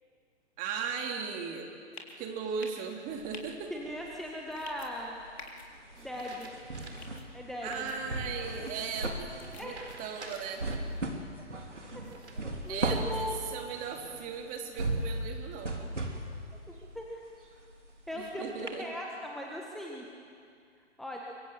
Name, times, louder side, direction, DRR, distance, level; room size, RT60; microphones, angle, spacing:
voice 1, 0.6-1.7 2.2-3.7 7.6-9.2 9.5-10.7 12.7-15.8 18.1-18.9, right 6 dB, 25° right, 3 dB, 2.8 m, -37 dB
sound 1, 1.9-2.2 2.6-2.8 3.3-3.4 4.5-4.9 5.4-5.7 6.1-6.5 7.0-7.2 7.7-8.0 8.7-8.9 9.4-9.7, left 4 dB, 60° left, 3.5 m, -48 dB
sound 2, 2.8-3.8 6.0-7.2 7.6-7.7 9.7-11.0 12.0-13.2 13.7-14.3, right 3 dB, 65° right, 4.6 m, -50 dB
sound 3, 3.1-4.2 4.5-18.3 18.7-18.8, right 1 dB, 80° right, 3.5 m, -37 dB
voice 2, 3.7-5.2 6.0-6.5 7.3-8.0 9.6-9.9 11.3-11.4 12.3-12.8 13.1-13.3 16.9-17.2 18.1-20.0 21.0-21.2, equal, ahead, -2 dB, 1.6 m, -39 dB
25.0 x 23.5 x 7.8 m, 2.3 s
figure-of-eight pair, 120°, 35 cm